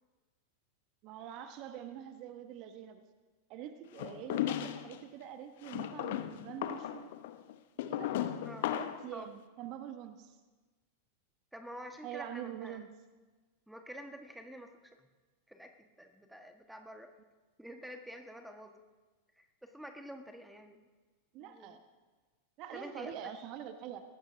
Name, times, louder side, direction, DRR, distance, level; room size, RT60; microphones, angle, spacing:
voice 1, 1.0-3.0 3.5-7.1 7.9-8.1 8.7-10.4 12.0-12.9 21.3-21.8 22.6-24.0, right 10 dB, 40° right, 8 dB, 1.2 m, -45 dB
sound 1, 4.0-5.0 5.6-9.1, left 12 dB, 55° left, 0.9 m, -36 dB
voice 2, 8.4-8.7 9.1-9.3 11.5-12.8 13.7-15.1 15.5-17.1 17.6-18.8 19.4-20.9 21.4-21.8 22.7-23.3, equal, ahead, 5 dB, 1.3 m, -48 dB
22.5 x 18.5 x 2.7 m, 1.3 s
figure-of-eight pair, 90°, 0 cm